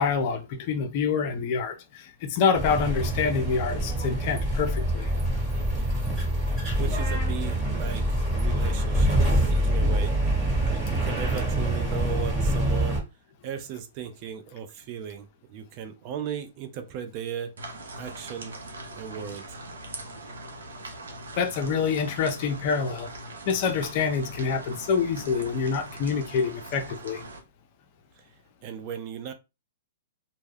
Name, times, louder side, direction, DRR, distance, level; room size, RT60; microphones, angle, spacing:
voice 1, 0.0-5.1 21.4-23.1 23.5-27.2, left 5 dB, 45° left, 0.5 m, -26 dB
sound 1, 2.5-13.0, right 1 dB, 15° right, 1.3 m, -25 dB
voice 2, 6.8-10.2 10.9-13.0 13.4-17.6 18.0-18.6 18.9-19.6 28.6-29.3, right 8 dB, 40° right, 0.5 m, -37 dB
sound 2, 17.6-27.4, right 1 dB, 80° right, 0.7 m, -41 dB
2.2 x 2.1 x 3.3 m
hypercardioid pair, 125°, 0 cm